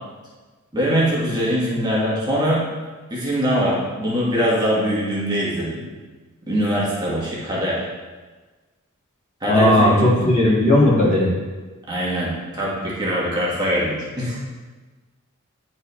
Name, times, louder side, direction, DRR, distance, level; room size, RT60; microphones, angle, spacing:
voice 1, 0.7-2.6 3.1-5.8 6.5-7.9 9.4-10.3 11.9-14.4, equal, 20° right, -6 dB, 1.1 m, -22 dB
voice 2, 9.5-11.3, left 1 dB, 35° left, -6 dB, 1.7 m, -16 dB
9.5 x 4.5 x 2.2 m, 1.3 s
head